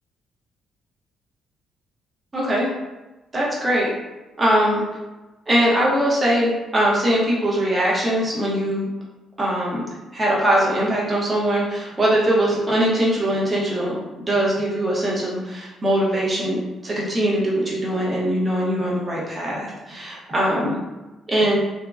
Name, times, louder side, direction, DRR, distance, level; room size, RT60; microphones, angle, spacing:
voice 1, 2.3-2.7 3.3-3.9 4.4-4.8 5.5-8.9 9.4-20.8 21.3-21.6, right 1 dB, 25° right, -5 dB, 0.9 m, -21 dB
2.7 x 2.2 x 2.3 m, 1.1 s
cardioid pair, 90°, 0 cm